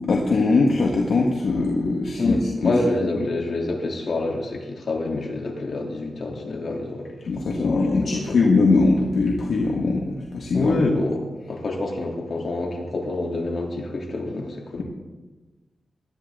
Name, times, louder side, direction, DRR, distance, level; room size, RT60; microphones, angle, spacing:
voice 1, 0.1-2.7 7.3-10.8 14.8-14.9, left 3 dB, 75° left, -1 dB, 1.7 m, -21 dB
voice 2, 2.2-8.4 10.5-14.8, left 2 dB, 60° left, -1 dB, 3.2 m, -27 dB
18.5 x 13.0 x 3.9 m, 1.2 s
cardioid pair, 80°, 0 cm